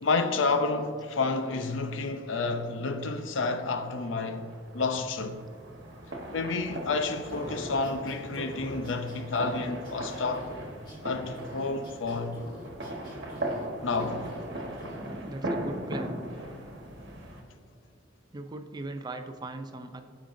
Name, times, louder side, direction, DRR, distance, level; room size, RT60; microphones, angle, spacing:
voice 1, 0.0-5.4 6.3-10.5 11.0-12.4 13.8-14.3, left 3 dB, 75° left, 0.6 m, -30 dB
sound 1, 3.9-17.4, right 1 dB, 65° right, 1.2 m, -39 dB
sound 2, 7.3-11.0 11.3-13.6 13.9-14.4 14.8-15.0, equal, 25° left, 1.9 m, -45 dB
voice 2, 15.2-16.3 18.3-20.0, right 2 dB, 20° right, 0.4 m, -39 dB
14.0 x 5.1 x 2.6 m
head